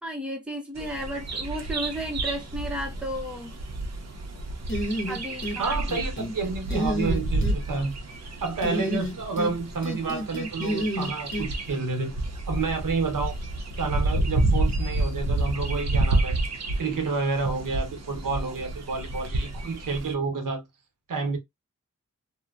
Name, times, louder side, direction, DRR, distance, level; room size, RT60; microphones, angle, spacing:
voice 1, 0.0-3.5 5.1-5.9, equal, 5° right, 0.6 m, -33 dB
Bird vocalization bird call bird song, 0.7-20.1, right 2 dB, 55° right, 0.6 m, -30 dB
sound 1, 4.7-5.6 5.9-6.3 6.7-7.6 8.6-9.5 9.8-11.5, equal, 40° left, 0.7 m, -29 dB
voice 2, 5.6-7.9 8.4-13.4 13.8-16.4 16.8-20.6 21.1-21.4, right 4 dB, 90° right, 0.9 m, -29 dB
2.7 x 2.0 x 2.4 m
wide cardioid pair, 125°, 31 cm